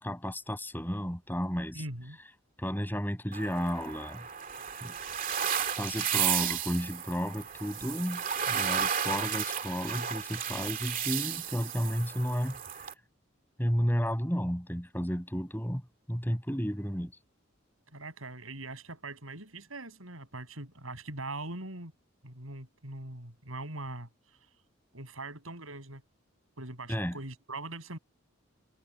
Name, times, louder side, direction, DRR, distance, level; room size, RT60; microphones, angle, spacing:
voice 1, 0.0-1.8 2.6-4.2 4.8-4.9 5.8-12.6 13.6-15.8 16.1-17.1 26.9-27.2, equal, 10° left, 7.3 m, -32 dB
voice 2, 1.7-2.2 17.9-21.9 22.2-24.5 24.9-26.0 26.6-28.0, right 2 dB, 90° right, 7.6 m, -42 dB
sound 1, 3.3-12.9, right 8 dB, 40° right, 2.5 m, -33 dB
head